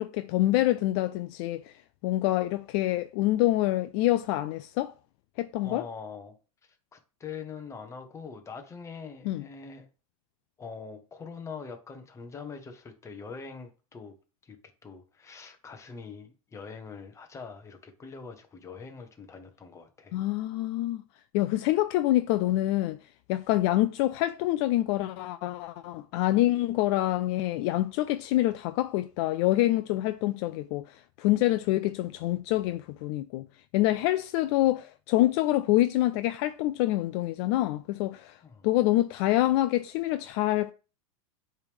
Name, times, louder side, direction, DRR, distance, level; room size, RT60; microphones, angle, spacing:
voice 1, 0.0-1.7 2.0-4.9 5.4-5.8 9.3-9.4 20.1-21.0 21.3-23.0 23.3-33.5 33.7-38.4 38.6-40.7, left 16 dB, 50° left, 0.4 m, -26 dB
voice 2, 5.6-6.3 6.6-9.9 10.6-14.1 14.4-14.6 14.8-20.2 38.4-38.7, left 5 dB, 15° left, 1.0 m, -43 dB
8.0 x 3.4 x 3.5 m
supercardioid pair, 135°, 18 cm